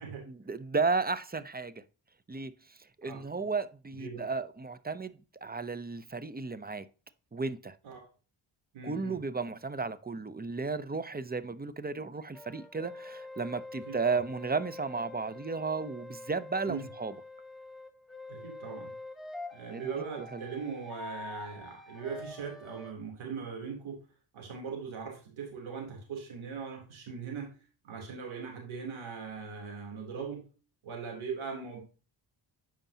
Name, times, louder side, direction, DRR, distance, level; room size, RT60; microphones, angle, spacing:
voice 1, 0.3-1.8 2.3-2.5 3.0-5.1 5.4-6.8 7.3-7.8 8.8-17.1 19.7-20.4, right 4 dB, 20° right, 0.6 m, -34 dB
voice 2, 8.7-9.2 13.9-14.0 16.7-16.9 18.3-18.9 19.5-24.0 24.3-27.5 27.8-30.4 30.8-31.8, right 5 dB, 90° right, 3.2 m, -40 dB
sound 1, 12.3-22.9, left 3 dB, ahead, 1.4 m, -46 dB
8.9 x 5.2 x 2.8 m
cardioid pair, 60°, 47 cm